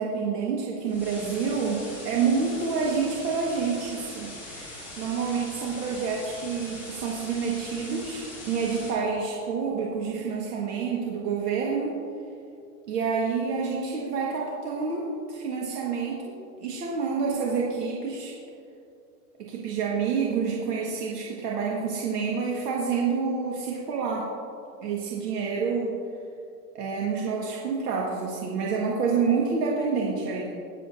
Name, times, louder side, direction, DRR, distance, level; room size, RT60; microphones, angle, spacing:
voice 1, 0.0-12.0 12.9-16.3 16.6-18.3 19.4-24.3 24.8-26.0 26.7-30.5, right 5 dB, 80° right, -3 dB, 1.8 m, -28 dB
sound 1, 0.8-8.9, left 1 dB, 5° right, 2.7 m, -41 dB
21.5 x 7.6 x 2.7 m, 2.6 s
supercardioid pair, 175°, 47 cm